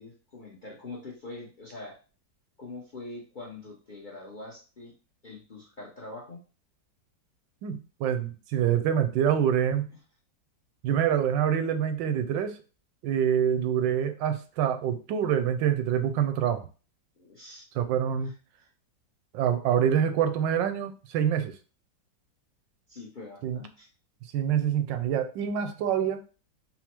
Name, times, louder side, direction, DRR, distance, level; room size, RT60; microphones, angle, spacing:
voice 1, 0.0-2.0 2.6-4.9 5.2-6.4 17.2-17.7 18.2-18.3 18.6-18.7 22.9-23.9, left 2 dB, 45° left, -3 dB, 0.6 m, -43 dB
voice 2, 7.6-9.9 10.8-12.6 13.0-16.7 17.8-18.3 19.3-21.5 23.4-23.6 24.3-26.2, right 9 dB, 80° right, 8 dB, 1.2 m, -26 dB
4.2 x 2.0 x 4.3 m, 0.36 s
omnidirectional pair, 2.0 m